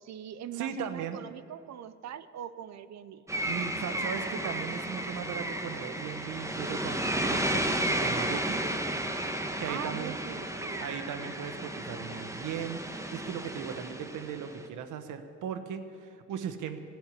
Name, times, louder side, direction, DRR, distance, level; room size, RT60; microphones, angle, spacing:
voice 1, 0.0-3.3 9.7-10.9, right 9 dB, 60° right, 14 dB, 0.8 m, -42 dB
voice 2, 0.5-1.2 3.5-8.6 9.6-10.2 10.8-16.8, right 8 dB, 85° right, 9 dB, 1.2 m, -38 dB
sound 1, 3.3-14.6, right 1 dB, 10° right, 1.3 m, -33 dB
15.5 x 8.0 x 9.9 m, 2.5 s
cardioid pair, 90°, 30 cm